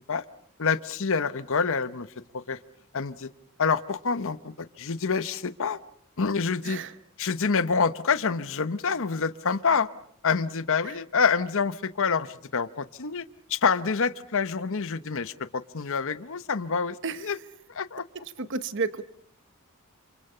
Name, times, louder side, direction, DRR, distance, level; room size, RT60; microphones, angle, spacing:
voice 1, 0.6-2.1 2.3-2.6 2.9-3.3 3.6-5.8 6.2-6.8 7.2-9.9 10.2-13.2 13.5-17.4 17.7-18.0, left 5 dB, 65° left, 14 dB, 0.9 m, -27 dB
voice 2, 18.1-19.0, right 4 dB, 55° right, 13 dB, 1.0 m, -32 dB
28.0 x 27.5 x 5.6 m, 0.66 s
head